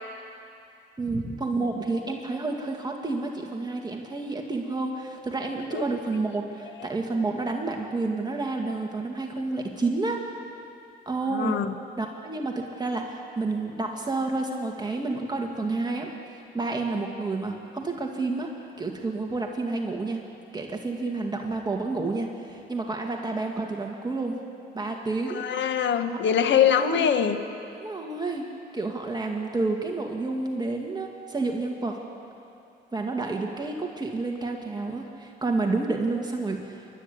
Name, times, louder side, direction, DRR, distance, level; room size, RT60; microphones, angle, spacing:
voice 1, 1.0-10.2 11.1-11.6 12.0-16.1 16.5-18.5 18.8-20.2 20.5-24.4 24.7-25.4 26.1-26.2 26.5-27.0 27.7-28.4 28.7-32.0 32.9-36.9, right 3 dB, 20° right, 1 dB, 2.1 m, -30 dB
voice 2, 11.3-11.7 25.3-27.4, left 8 dB, 65° left, 8 dB, 1.4 m, -23 dB
28.5 x 12.5 x 8.5 m, 2.7 s
cardioid pair, 90°, 20 cm